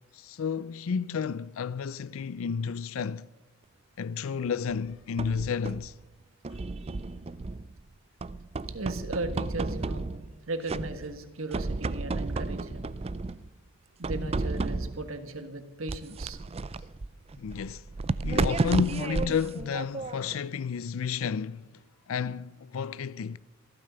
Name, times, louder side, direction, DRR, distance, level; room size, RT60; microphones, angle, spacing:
voice 1, 0.1-3.3 4.0-5.9 17.4-17.8 18.2-21.7 22.1-23.4, left 6 dB, 65° left, 0.4 m, -31 dB
sound 1, 4.7-5.9 6.4-7.8 8.2-10.4 10.7-11.2 11.5-13.5 14.0-15.1 15.9-20.4, right 3 dB, 25° right, 0.4 m, -32 dB
voice 2, 8.7-10.1 10.5-12.9 14.0-16.4, right 2 dB, 65° right, 1.5 m, -37 dB
15.0 x 13.0 x 6.9 m
head